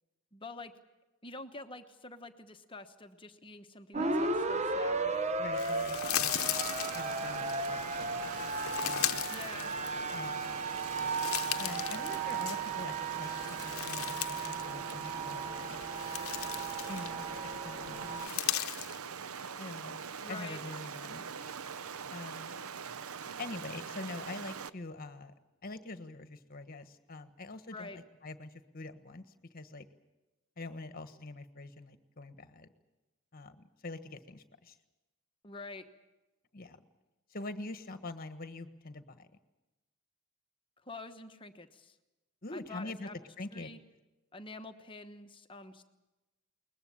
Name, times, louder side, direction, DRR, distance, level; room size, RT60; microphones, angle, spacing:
voice 1, 0.3-0.7 1.2-5.2 9.3-9.8 20.2-20.6 27.7-28.0 35.4-35.8 40.8-42.0 42.5-43.2 43.5-43.8 44.3-45.8, left 3 dB, 25° left, 7 dB, 1.2 m, -47 dB
sound 1, 3.9-18.3, right 3 dB, 30° right, 0.9 m, -36 dB
voice 2, 5.4-6.6 6.9-8.5 8.8-9.3 10.1-10.6 11.6-15.8 16.9-18.3 19.6-21.3 22.1-22.5 23.4-25.3 25.6-29.2 29.5-29.9 30.6-32.7 33.3-34.8 36.5-36.8 37.3-39.3 42.4-43.1 43.4-43.7, left 2 dB, 40° left, 10 dB, 1.4 m, -45 dB
sound 2, 5.5-7.6 8.3-10.3 10.7-12.8 13.2-14.6 14.9-15.1 15.7-17.4 18.1-19.0, left 13 dB, 75° left, 0.8 m, -37 dB
Stream, 6.2-24.7, right 6 dB, 80° right, 0.7 m, -42 dB
22.0 x 20.5 x 8.7 m, 1.1 s
head